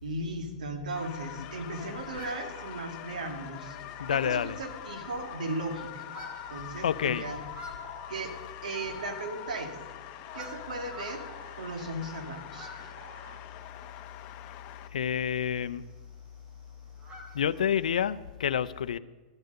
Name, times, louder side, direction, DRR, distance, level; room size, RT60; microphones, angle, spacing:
voice 1, 0.0-3.8 4.1-6.1 6.5-7.4 8.1-9.8 10.3-11.2 11.6-12.7, right 2 dB, 90° right, 2.1 m, -36 dB
sound 1, 1.0-14.9, left 13 dB, 40° left, 0.8 m, -44 dB
sound 2, 1.1-18.0, equal, 30° right, 3.3 m, -53 dB
sound 3, 1.6-14.0, right 2 dB, 65° right, 4.0 m, -53 dB
voice 2, 4.0-4.6 6.8-7.2 14.9-15.8 17.3-19.0, left 9 dB, 90° left, 0.5 m, -28 dB
13.5 x 8.0 x 6.7 m
hypercardioid pair, 135°, 4 cm